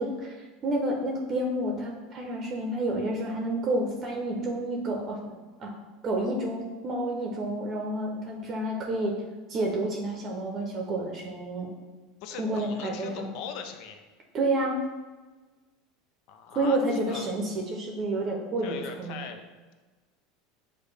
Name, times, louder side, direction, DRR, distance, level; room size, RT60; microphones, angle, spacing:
voice 1, 0.0-5.2 5.6-5.7 6.0-9.2 9.5-11.7 12.4-13.3 14.3-14.8 16.5-19.2, right 1 dB, 40° right, 0 dB, 0.7 m, -29 dB
voice 2, 12.2-14.0 16.3-17.3 18.6-19.4, left 6 dB, 65° left, 6 dB, 0.5 m, -40 dB
6.3 x 2.2 x 3.3 m, 1.3 s
hypercardioid pair, 100°, 0 cm